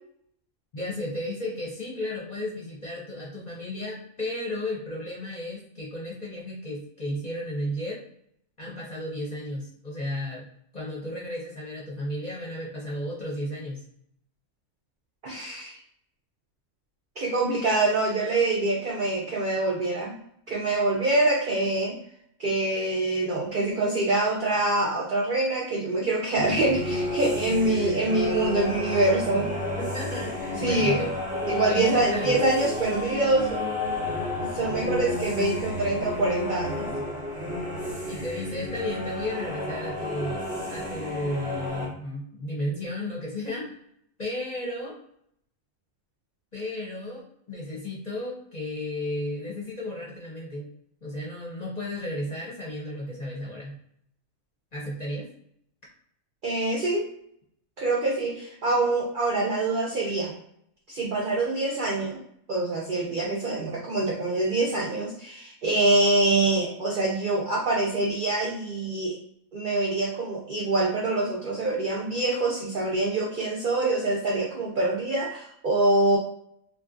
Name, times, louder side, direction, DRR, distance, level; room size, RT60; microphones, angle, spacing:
voice 1, 0.7-8.0 8.6-10.5 10.7-13.8 29.8-31.1 31.7-32.4 38.1-43.8 44.2-45.0 46.5-50.7 51.0-53.8 54.7-55.3, left 1 dB, 40° left, -5 dB, 0.6 m, -33 dB
voice 2, 15.2-15.8 17.2-20.1 20.5-22.0 22.4-29.5 30.6-31.0 31.5-33.6 34.4-36.9 56.4-57.1 57.8-60.3 60.9-62.2 62.5-69.2 69.5-76.2, right 2 dB, 65° right, -2 dB, 0.5 m, -25 dB
sound 1, 26.3-41.9, left 1 dB, 5° right, 0.7 m, -31 dB
3.0 x 2.2 x 2.5 m, 0.71 s
omnidirectional pair, 1.4 m